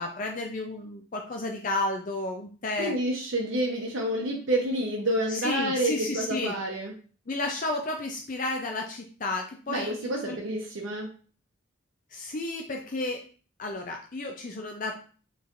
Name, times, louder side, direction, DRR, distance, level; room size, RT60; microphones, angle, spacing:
voice 1, 0.0-2.9 5.3-6.5 7.3-8.8 9.2-10.4 12.3-13.2 13.6-15.0, left 2 dB, 40° left, 2 dB, 0.5 m, -32 dB
voice 2, 2.8-6.9 9.7-11.1, right 1 dB, 80° right, -2 dB, 0.8 m, -29 dB
5.2 x 3.2 x 2.5 m, 0.39 s
head